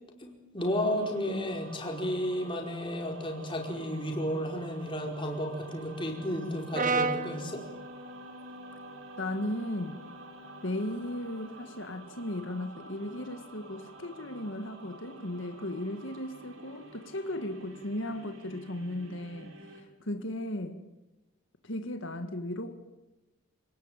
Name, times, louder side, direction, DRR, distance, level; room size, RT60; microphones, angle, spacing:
voice 1, 0.2-7.7, equal, 25° left, 4.9 m, -33 dB
sound 1, 0.6-19.8, right 3 dB, 70° right, 4.9 m, -50 dB
Brass instrument, 6.7-11.0, right 3 dB, 40° right, 1.4 m, -35 dB
voice 2, 9.2-10.1 10.6-20.8 21.6-22.7, left 1 dB, 60° left, 1.9 m, -36 dB
28.5 x 19.5 x 9.1 m
head